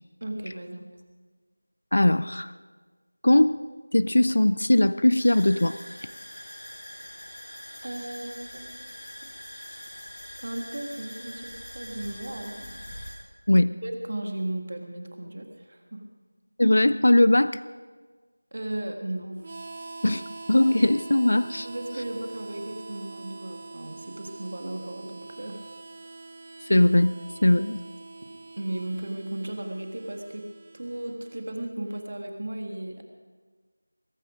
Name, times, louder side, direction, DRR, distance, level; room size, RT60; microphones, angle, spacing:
voice 1, 0.2-0.9 7.8-8.8 10.4-12.8 13.8-16.0 18.5-19.4 21.6-25.6 28.6-30.5 30.7-33.0, right 1 dB, 50° right, 3 dB, 1.8 m, -35 dB
voice 2, 1.9-2.5 3.2-3.6 3.9-5.8 13.5-13.7 16.6-17.6 20.0-20.2 20.5-21.7 26.7-27.1 27.4-27.8, left 1 dB, 60° left, 16 dB, 0.5 m, -20 dB
sound 1, 5.2-13.1, equal, 25° left, 6.2 m, -43 dB
Harmonica, 19.4-32.0, right 3 dB, 30° right, 0.7 m, -44 dB
21.0 x 12.5 x 5.1 m, 1.4 s
figure-of-eight pair, 175°, 0 cm